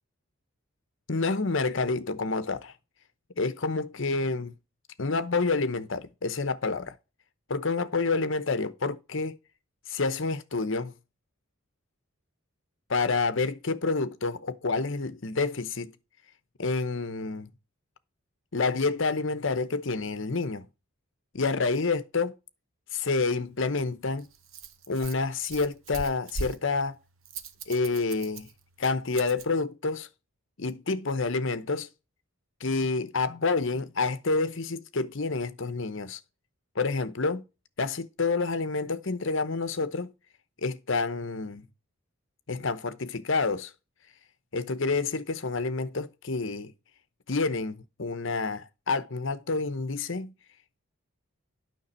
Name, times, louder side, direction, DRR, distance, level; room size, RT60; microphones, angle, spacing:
voice 1, 1.1-2.7 3.4-4.5 5.0-7.0 7.5-9.4 9.9-10.9 12.9-15.9 16.6-17.5 18.5-20.7 21.3-22.3 22.9-24.3 24.9-27.0 27.7-28.5 28.8-30.1 30.6-31.9 32.6-36.2 36.8-37.5 37.8-40.1 40.6-41.7 42.5-43.7 44.5-46.7 47.3-50.3, left 3 dB, 60° left, 0.9 m, -28 dB
Rattle, 23.5-29.5, right 3 dB, 65° right, 1.0 m, -41 dB
9.5 x 6.1 x 4.3 m
head